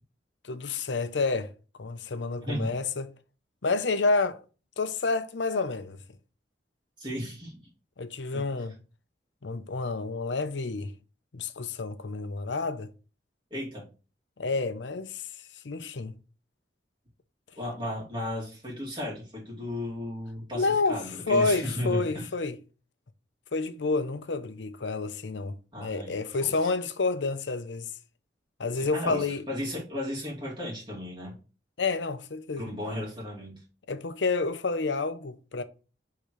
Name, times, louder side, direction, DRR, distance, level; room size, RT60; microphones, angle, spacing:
voice 1, 0.4-1.5 1.8-3.1 3.6-4.4 4.8-6.0 8.0-8.7 9.4-10.9 11.3-12.9 14.4-15.3 15.6-16.2 20.5-22.6 23.5-27.9 28.6-29.4 31.8-32.7 33.9-35.6, left 3 dB, 90° left, 0.7 m, -29 dB
voice 2, 2.4-2.7 7.0-7.7 8.3-8.4 13.5-13.8 17.6-22.3 25.7-26.2 26.4-26.7 28.7-31.4 32.6-33.6, left 1 dB, 25° right, 2.6 m, -35 dB
10.0 x 3.8 x 3.2 m
head